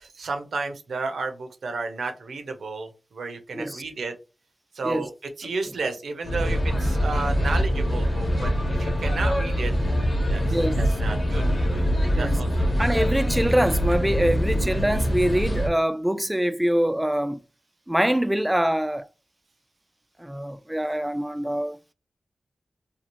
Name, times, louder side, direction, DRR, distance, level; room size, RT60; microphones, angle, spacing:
voice 1, 0.0-4.1 4.7-5.1 5.4-9.7 10.3-10.4 10.8-12.8 14.6-14.8, right 3 dB, 80° right, 0.6 m, -32 dB
sound 1, 6.2-15.7, equal, 55° left, 1.0 m, -24 dB
voice 2, 10.5-10.8 12.1-12.4 12.8-17.4 17.9-19.1 20.2-21.8, right 1 dB, 10° right, 0.3 m, -24 dB
2.7 x 2.4 x 3.0 m
cardioid pair, 50°, 0 cm